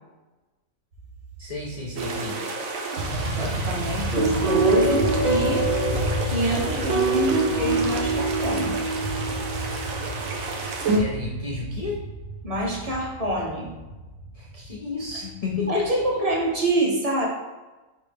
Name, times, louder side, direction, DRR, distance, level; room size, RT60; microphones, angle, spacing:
sound 1, 0.9-2.1 3.0-16.7, right 1 dB, 65° right, 1.0 m, -33 dB
voice 1, 1.4-2.5 11.0-12.0 14.3-16.2, left 4 dB, 70° left, -2 dB, 0.3 m, -31 dB
sound 2, 2.0-11.0, right 3 dB, 85° right, 1.1 m, -26 dB
voice 2, 3.4-5.7 6.2-8.8 12.4-13.8 15.7-17.3, right 1 dB, 35° right, -2 dB, 0.8 m, -26 dB
4.5 x 3.5 x 3.4 m, 1.1 s
omnidirectional pair, 1.4 m